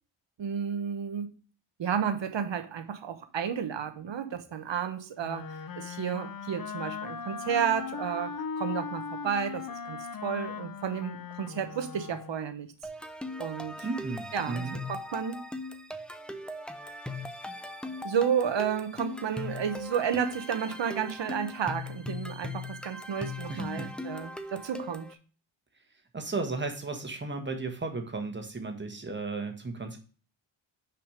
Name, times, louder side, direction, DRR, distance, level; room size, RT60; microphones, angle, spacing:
voice 1, 0.4-1.3 1.8-12.7 13.4-13.9 14.3-15.4 18.0-25.1, right 8 dB, 60° right, 1.1 m, -32 dB
Wind instrument woodwind instrument, 5.2-12.5, left 6 dB, 45° left, 0.7 m, -38 dB
sound 1, 12.8-25.1, left 2 dB, ahead, 0.6 m, -39 dB
voice 2, 13.8-14.8 23.5-23.9 26.1-30.0, right 3 dB, 20° right, 1.4 m, -34 dB
6.0 x 5.0 x 4.9 m
cardioid pair, 95°, 49 cm